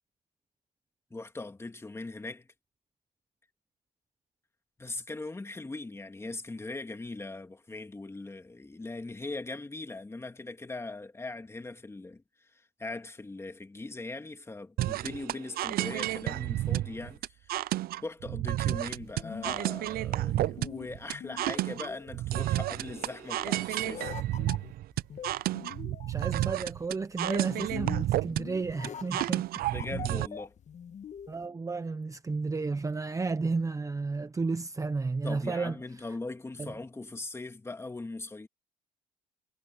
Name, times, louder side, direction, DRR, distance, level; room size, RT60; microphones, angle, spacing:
voice 1, 1.1-2.5 4.8-12.2 12.5-24.1 29.7-30.5 35.2-38.5, left 2 dB, 15° left, 2.3 m, -40 dB
sound 1, 14.8-30.3, right 15 dB, 60° right, 0.5 m, -31 dB
sound 2, 18.9-31.4, left 8 dB, 45° left, 1.5 m, -44 dB
voice 2, 26.1-29.4 31.3-35.8 36.6-36.7, right 4 dB, 20° right, 0.9 m, -32 dB
cardioid pair, 110°, 17 cm